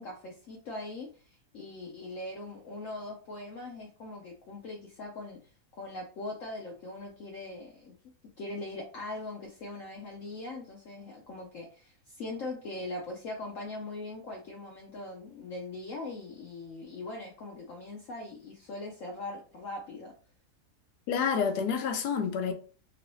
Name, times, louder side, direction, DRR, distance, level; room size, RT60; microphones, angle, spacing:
voice 1, 0.0-7.9 8.4-20.1, left 2 dB, 65° left, 0.9 m, -41 dB
voice 2, 21.1-22.5, left 6 dB, 80° left, 1.2 m, -28 dB
3.1 x 2.7 x 3.0 m
omnidirectional pair, 1.7 m